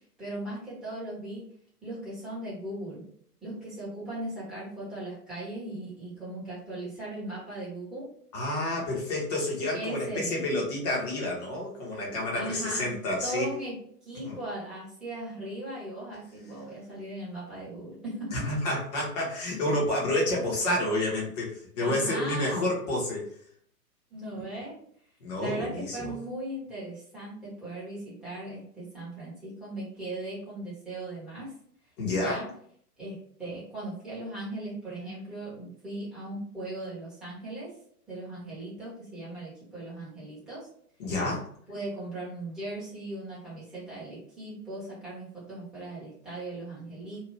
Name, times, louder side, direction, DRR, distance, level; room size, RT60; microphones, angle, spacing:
voice 1, 0.2-1.4 1.8-3.0 3.4-8.1 9.7-10.4 12.3-12.9 13.2-13.7 14.0-18.4 21.8-22.7 24.1-24.8 25.4-31.5 32.1-32.5 33.0-37.7 38.1-40.7 41.7-47.2, right 1 dB, ahead, -11 dB, 0.9 m, -38 dB
voice 2, 8.3-13.5 14.2-14.4 18.3-23.3 25.2-26.2 32.0-32.4 41.0-41.4, left 1 dB, 25° left, -3 dB, 0.9 m, -29 dB
2.7 x 2.4 x 3.1 m, 0.62 s
figure-of-eight pair, 120°, 48 cm